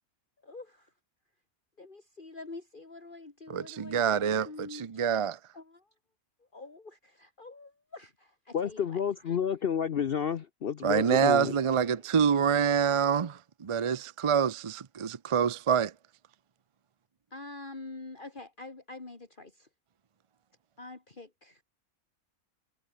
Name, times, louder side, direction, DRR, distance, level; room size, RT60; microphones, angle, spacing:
voice 1, 0.4-0.9 1.8-5.2 5.5-5.9 6.4-9.4 17.3-19.7 20.8-21.6, left 3 dB, 35° left, 2.7 m, -46 dB
voice 2, 3.5-5.4 10.8-15.9, right 7 dB, 45° right, 0.4 m, -26 dB
voice 3, 8.5-11.5, left 8 dB, 50° left, 0.8 m, -30 dB
omnidirectional pair, 1.5 m